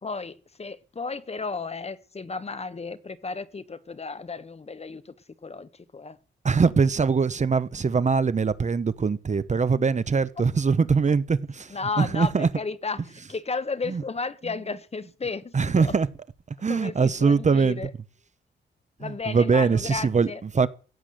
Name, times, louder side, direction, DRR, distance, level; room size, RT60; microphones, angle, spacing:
voice 1, 0.0-5.1 5.4-6.2 11.7-15.9 16.7-17.9 19.0-20.4, left 4 dB, 30° left, 1.0 m, -33 dB
voice 2, 6.4-12.5 13.9-14.0 15.5-16.1 16.5-17.8 19.0-20.7, right 5 dB, 35° right, 0.9 m, -22 dB
15.5 x 8.3 x 7.7 m
cardioid pair, 100°, 20 cm